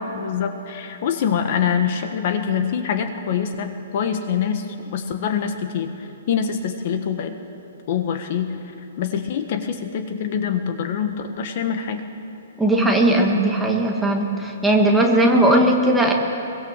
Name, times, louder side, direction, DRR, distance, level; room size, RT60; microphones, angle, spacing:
voice 1, 0.1-7.3 7.9-8.6 9.0-12.0, left 7 dB, 35° left, 7 dB, 1.4 m, -25 dB
voice 2, 12.6-16.1, right 1 dB, 5° right, -1 dB, 1.7 m, -18 dB
24.0 x 23.0 x 7.4 m, 2.8 s
hypercardioid pair, 175°, 0 cm